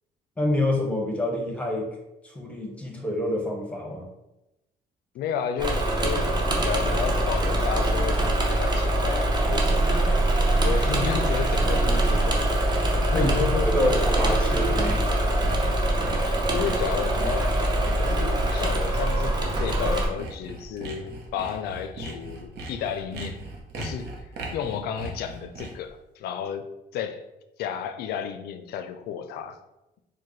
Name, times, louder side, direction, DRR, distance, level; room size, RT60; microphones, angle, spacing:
voice 1, 0.4-1.9 2.3-4.1 13.1-13.4 13.6-15.1, left 1 dB, 5° left, 0 dB, 0.8 m, -27 dB
voice 2, 5.1-10.2 10.5-13.9 16.5-17.6 18.0-23.4 23.8-27.3 27.6-29.6, left 8 dB, 70° left, 9 dB, 0.4 m, -32 dB
Engine / Mechanisms, 5.6-20.1, right 1 dB, 25° right, 0.7 m, -23 dB
Sawing, 8.6-25.9, right 2 dB, 75° right, 0.8 m, -40 dB
4.4 x 2.2 x 3.1 m, 0.94 s
cardioid pair, 110°, 17 cm